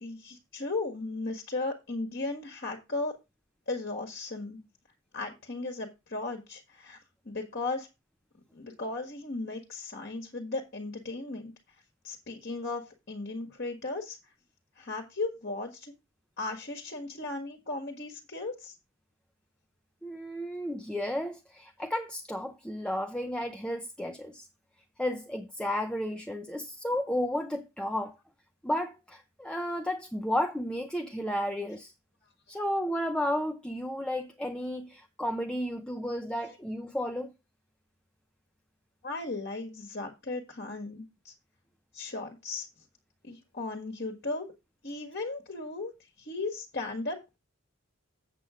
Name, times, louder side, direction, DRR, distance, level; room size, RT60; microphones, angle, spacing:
voice 1, 0.0-3.2 3.7-4.6 5.1-7.0 7.2-7.9 8.5-11.5 12.0-14.2 14.8-15.9 16.4-18.7 36.4-36.5 39.0-41.3 41.9-42.7 43.2-44.5 44.8-45.9 46.2-47.4, left 3 dB, 45° left, 1.7 m, -36 dB
voice 2, 20.0-24.5 25.0-28.2 28.6-31.9 32.5-37.3, left 1 dB, 5° left, 0.6 m, -33 dB
8.2 x 7.1 x 4.9 m
head